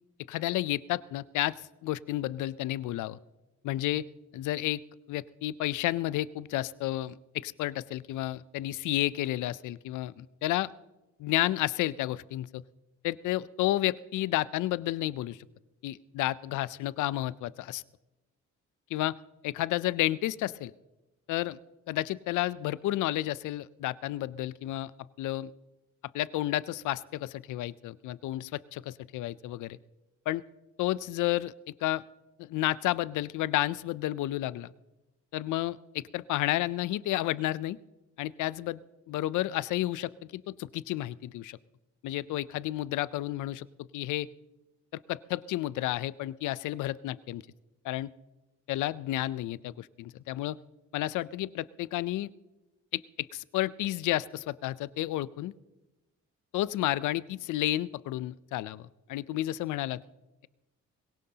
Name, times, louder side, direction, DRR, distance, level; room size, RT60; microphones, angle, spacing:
voice 1, 0.3-3.2 3.6-4.0 4.3-4.8 5.1-10.7 11.2-12.6 13.0-15.4 15.8-17.8 18.9-19.2 19.4-20.7 21.3-21.6 21.9-24.9 25.2-25.5 26.1-29.8 30.3-30.4 30.8-31.5 31.8-32.0 32.4-34.7 35.3-37.8 38.2-38.8 39.1-41.6 42.0-44.3 44.9-47.4 47.8-48.1 48.7-50.6 50.9-52.3 52.9-55.5 56.5-60.0, left 15 dB, 80° left, 19 dB, 0.5 m, -31 dB
22.0 x 17.0 x 2.8 m, 1.0 s
cardioid pair, 90°, 30 cm